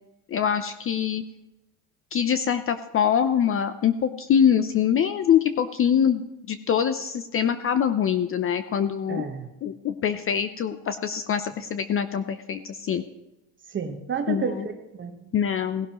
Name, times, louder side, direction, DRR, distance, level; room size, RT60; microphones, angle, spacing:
voice 1, 0.3-1.2 2.1-9.2 9.6-13.0 14.3-14.6 15.3-15.9, left 8 dB, 30° left, 11 dB, 0.5 m, -24 dB
voice 2, 9.1-9.5 13.7-15.3, right 6 dB, 25° right, 7 dB, 1.2 m, -31 dB
17.5 x 11.5 x 3.0 m, 0.99 s
supercardioid pair, 110°, 43 cm